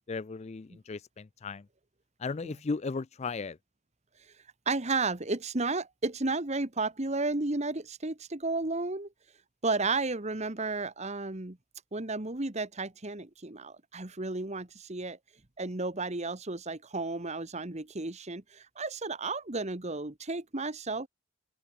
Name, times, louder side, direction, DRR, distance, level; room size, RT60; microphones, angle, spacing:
voice 1, 0.0-1.6 2.2-3.6, left 4 dB, 30° left, 0.4 m, -36 dB
voice 2, 4.6-9.1 9.6-11.6 11.9-15.2 15.6-21.1, right 3 dB, 30° right, 1.4 m, -33 dB
open air
head